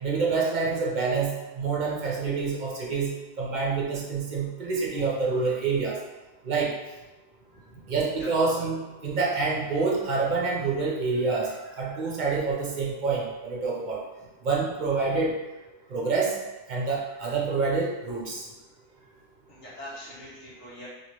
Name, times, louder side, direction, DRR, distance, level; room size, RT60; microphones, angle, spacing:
voice 1, 0.0-3.1 3.4-6.0 6.4-6.7 7.9-14.0 14.4-15.4 15.9-16.4 16.7-18.4, right 4 dB, 50° right, -3 dB, 0.7 m, -27 dB
voice 2, 7.5-7.9 8.2-8.3 19.5-20.9, equal, 85° left, -10 dB, 1.3 m, -43 dB
2.9 x 2.9 x 2.9 m, 1.1 s
omnidirectional pair, 1.2 m